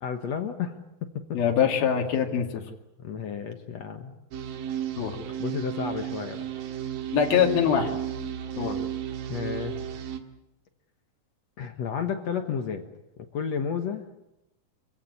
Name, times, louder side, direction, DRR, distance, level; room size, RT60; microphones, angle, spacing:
voice 1, 0.0-1.4 3.0-4.1 5.4-6.4 9.3-9.8 11.6-12.8 13.3-14.2, left 7 dB, 60° left, 6 dB, 2.1 m, -32 dB
voice 2, 1.3-2.6 5.0-5.2 7.1-7.9 8.6-8.8, left 8 dB, 80° left, 2 dB, 4.2 m, -23 dB
sound 1, 4.3-10.2, right 10 dB, 75° right, 3.2 m, -34 dB
26.0 x 16.5 x 9.6 m, 0.90 s
omnidirectional pair, 4.2 m